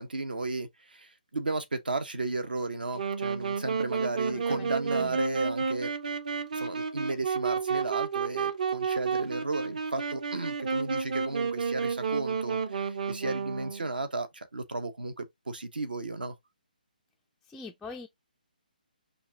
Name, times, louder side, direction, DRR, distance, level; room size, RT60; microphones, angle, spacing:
voice 1, 0.0-5.9 6.5-16.3, right 2 dB, 75° right, 1.1 m, -34 dB
Wind instrument woodwind instrument, 3.0-13.9, right 5 dB, 55° right, 0.8 m, -31 dB
voice 2, 4.3-5.2 17.4-18.1, left 3 dB, 5° left, 0.3 m, -44 dB
5.6 x 2.6 x 2.7 m
figure-of-eight pair, 145°, 5 cm